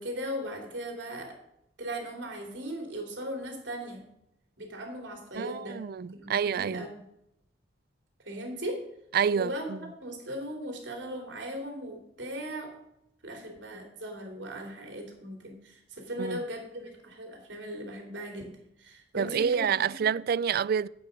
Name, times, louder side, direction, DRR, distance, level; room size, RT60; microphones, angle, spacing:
voice 1, 0.0-1.4 1.8-4.1 4.6-7.0 8.2-8.8 9.3-12.7 13.2-19.7 20.0-20.1, equal, 80° right, 3.1 m, -38 dB
voice 2, 5.4-6.8 9.1-9.8 16.2-16.4 19.1-20.9, right 7 dB, 55° right, 0.3 m, -28 dB
9.2 x 8.5 x 6.4 m
head